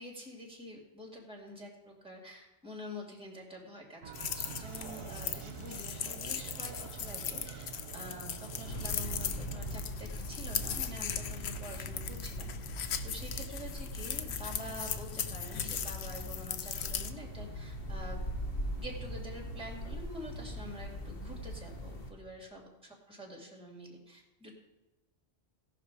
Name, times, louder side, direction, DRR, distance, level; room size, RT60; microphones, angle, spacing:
voice 1, 0.0-4.0 4.3-12.5 13.0-18.2 18.8-22.7 23.1-24.5, left 1 dB, 5° right, 0 dB, 2.4 m, -47 dB
sound 1, 4.0-9.8, right 7 dB, 65° right, 1.0 m, -46 dB
sound 2, 4.1-17.1, left 8 dB, 80° left, 1.0 m, -39 dB
sound 3, 8.6-22.1, equal, 60° left, 1.6 m, -41 dB
17.0 x 5.9 x 4.7 m, 1.1 s
omnidirectional pair, 1.1 m